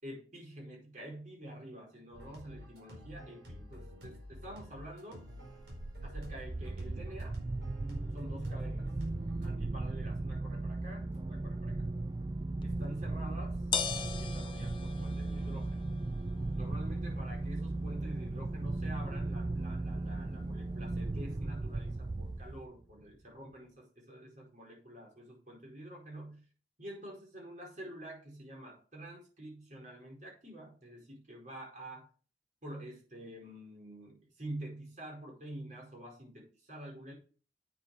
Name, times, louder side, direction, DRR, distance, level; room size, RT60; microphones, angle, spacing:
voice 1, 0.0-5.2 6.0-7.4 8.1-8.9 9.4-11.8 12.6-13.6 14.1-15.9 16.5-26.4 26.8-32.1 32.6-37.1, right 1 dB, 45° right, -1 dB, 4.8 m, -47 dB
sound 1, 2.1-9.5, left 1 dB, 75° right, 4.5 m, -50 dB
sound 2, 5.5-22.8, right 2 dB, 25° right, 0.3 m, -37 dB
sound 3, 12.6-22.6, left 6 dB, 30° left, 0.8 m, -44 dB
8.6 x 6.9 x 4.9 m, 0.39 s
head